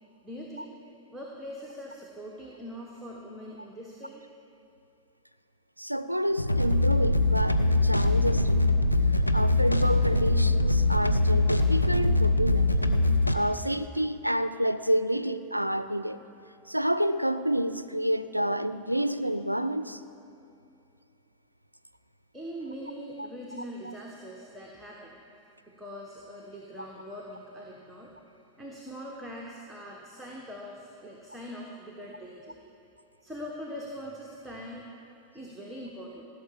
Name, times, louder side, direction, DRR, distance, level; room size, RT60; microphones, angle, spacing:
voice 1, 0.2-0.7 1.1-4.2 22.3-25.2 25.6-28.1 28.6-32.6 33.2-34.8 35.3-36.2, equal, 5° right, -3 dB, 1.4 m, -42 dB
voice 2, 5.8-8.8 9.1-12.7 13.3-16.2 16.7-20.0 23.8-23.9, equal, 90° right, 13 dB, 0.4 m, -29 dB
sound 1, 6.3-13.3, left 2 dB, 90° left, 0.6 m, -23 dB
15.5 x 6.7 x 7.4 m, 2.6 s
figure-of-eight pair, 90°, 0 cm